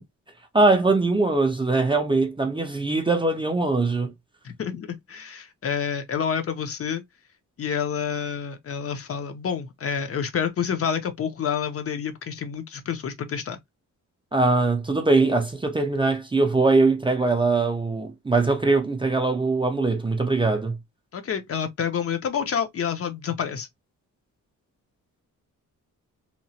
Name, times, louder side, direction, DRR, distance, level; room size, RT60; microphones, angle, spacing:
voice 1, 0.5-4.1 14.3-20.8, right 3 dB, 15° right, 0.4 m, -21 dB
voice 2, 4.4-7.0 7.6-13.6 21.1-23.7, left 7 dB, 45° left, 0.5 m, -28 dB
2.8 x 2.0 x 2.7 m
wide cardioid pair, 145°, 32 cm